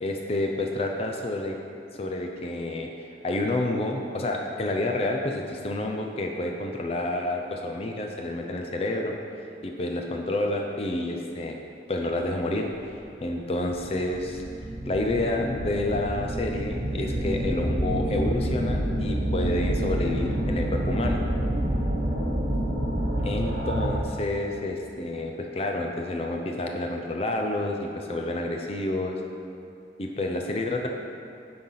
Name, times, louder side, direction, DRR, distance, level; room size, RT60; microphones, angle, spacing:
voice 1, 0.0-1.6 1.9-9.2 9.6-11.6 11.9-12.7 13.2-14.4 14.8-21.2 23.2-29.2 30.0-30.9, left 2 dB, 35° left, 2 dB, 0.5 m, -29 dB
sound 1, 12.8-12.9 13.6-24.2, right 1 dB, 75° right, 1.2 m, -28 dB
8.7 x 4.0 x 5.6 m, 2.7 s
head